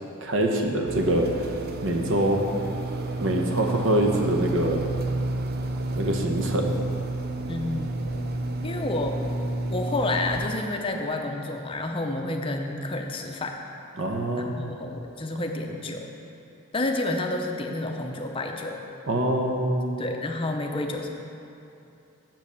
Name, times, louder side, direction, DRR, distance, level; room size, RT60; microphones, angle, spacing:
voice 1, 0.2-1.5 1.8-2.4 3.2-4.8 5.9-6.7 14.0-14.5 19.1-19.9, right 1 dB, 65° right, 2 dB, 0.9 m, -24 dB
sound 1, 0.9-10.5, right 2 dB, 45° right, 0.4 m, -30 dB
voice 2, 7.5-8.0 8.6-9.2 9.7-13.6 14.4-16.1 16.7-18.8 20.0-21.1, left 2 dB, 25° left, 3 dB, 0.5 m, -29 dB
7.4 x 5.2 x 6.8 m, 2.8 s
head